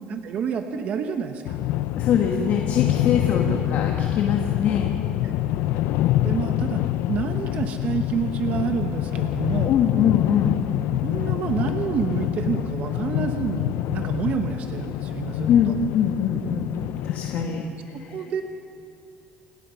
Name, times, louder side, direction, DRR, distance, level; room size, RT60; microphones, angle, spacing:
voice 1, 0.1-1.6 3.5-3.8 5.2-5.3 6.2-6.8 7.1-9.7 11.0-15.7 17.4-18.4, right 7 dB, 45° right, 6 dB, 1.1 m, -29 dB
sound 1, 1.4-17.5, left 14 dB, 80° left, 0.6 m, -26 dB
voice 2, 2.0-4.9 9.7-10.5 15.5-16.7 17.0-17.6 18.0-18.1, left 8 dB, 55° left, 2 dB, 1.7 m, -23 dB
28.5 x 19.0 x 5.7 m, 2.6 s
cardioid pair, 175°, 4 cm